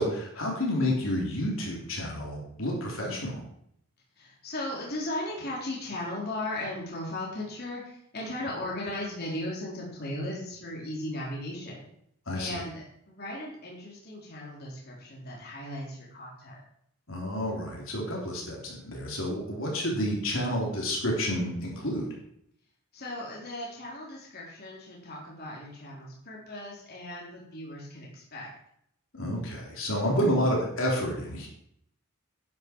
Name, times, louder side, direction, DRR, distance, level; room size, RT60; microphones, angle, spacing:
voice 1, 0.0-3.4 12.3-12.6 17.1-22.2 29.1-31.5, equal, 60° left, -2 dB, 3.7 m, -29 dB
voice 2, 4.2-11.9 12.3-16.6 22.9-28.5, left 1 dB, 45° left, -4 dB, 3.6 m, -37 dB
11.0 x 10.5 x 4.6 m, 0.71 s
head